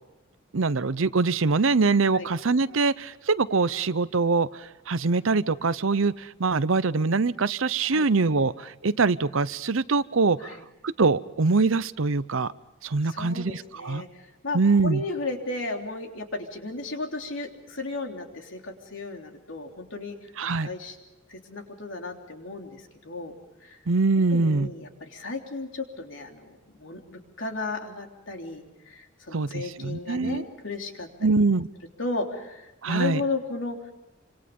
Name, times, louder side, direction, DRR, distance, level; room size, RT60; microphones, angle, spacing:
voice 1, 0.5-10.6 11.0-12.5 12.8-14.0 14.5-15.0 20.4-20.7 23.9-24.7 29.3-30.4 31.2-31.7 32.8-33.2, right 4 dB, 75° right, 14 dB, 0.7 m, -23 dB
voice 2, 13.1-20.2 20.4-21.0 21.3-23.3 23.6-23.8 24.3-31.3 32.0-33.8, left 2 dB, 70° left, 3 dB, 3.3 m, -34 dB
27.0 x 26.0 x 5.4 m, 1.0 s
head